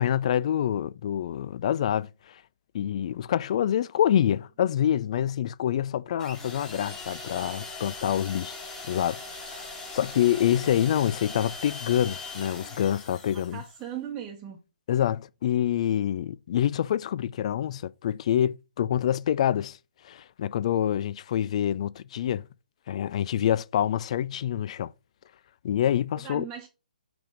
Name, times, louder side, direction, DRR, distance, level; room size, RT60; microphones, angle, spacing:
voice 1, 0.0-2.4 2.7-8.6 8.9-9.2 9.5-9.7 9.9-13.6 14.9-19.8 20.0-22.4 22.9-24.9 25.6-26.5, left 10 dB, 45° left, 0.3 m, -26 dB
sound 1, 6.2-13.8, left 3 dB, 15° left, 1.8 m, -40 dB
voice 2, 13.3-14.6 26.1-26.7, right 10 dB, 20° right, 1.1 m, -38 dB
6.0 x 3.4 x 5.0 m
figure-of-eight pair, 140°, 5 cm